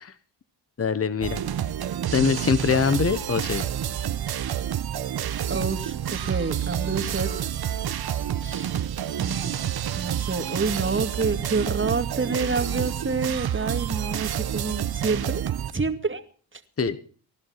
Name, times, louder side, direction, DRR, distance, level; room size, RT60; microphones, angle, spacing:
voice 1, 0.8-1.4 2.1-3.6 16.8-17.0, left 6 dB, 30° left, 13 dB, 1.3 m, -23 dB
sound 1, 1.2-15.7, right 10 dB, 55° right, 1.1 m, -29 dB
voice 2, 5.5-7.5 8.4-8.8 9.2-9.5 9.9-15.4 15.7-16.2 16.5-16.6, right 4 dB, 25° right, 8 dB, 2.3 m, -28 dB
sound 2, 6.2-7.2 7.5-11.2 11.9-14.5, right 9 dB, 80° right, 3.7 m, -47 dB
20.0 x 11.5 x 5.8 m, 0.42 s
supercardioid pair, 60°, 45 cm